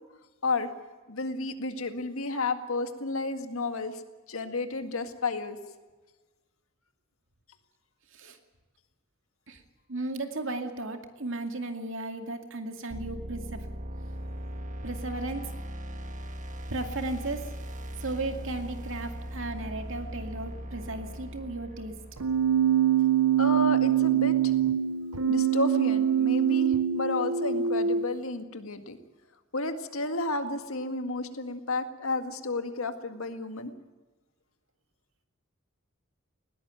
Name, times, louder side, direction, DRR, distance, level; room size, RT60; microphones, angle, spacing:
voice 1, 1.1-4.0 4.3-5.6 23.4-24.5 25.3-29.0 29.5-33.7, left 2 dB, 70° left, 8 dB, 1.9 m, -32 dB
voice 2, 9.9-13.7 14.8-15.5 16.7-17.5 18.0-21.9, right 2 dB, 60° right, 6 dB, 2.4 m, -35 dB
sound 1, 12.9-22.7, equal, 35° right, 1.6 m, -39 dB
Keyboard (musical), 22.2-28.1, right 9 dB, 80° right, 0.8 m, -24 dB
20.0 x 17.5 x 9.1 m, 1.3 s
head